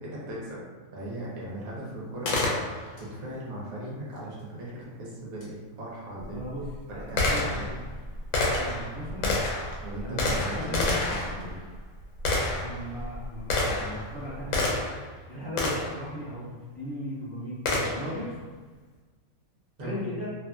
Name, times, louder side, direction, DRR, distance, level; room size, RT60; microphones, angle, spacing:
voice 1, 0.0-0.6 0.9-2.5 3.0-6.4 6.9-7.7 9.8-11.6 19.8-20.0, right 1 dB, 75° right, -5 dB, 1.2 m, -38 dB
Gunshot gunfire, 2.3-3.1 5.4-5.5 6.2-15.1 15.6-16.0 17.7-18.2, left 2 dB, 65° left, 0.9 m, -29 dB
voice 2, 6.3-6.6 6.9-7.8 8.6-9.4 9.6-11.0 12.5-14.6 15.3-18.4 19.8-20.3, left 1 dB, 20° left, -13 dB, 0.9 m, -37 dB
2.7 x 2.5 x 2.3 m, 1.3 s
omnidirectional pair, 1.5 m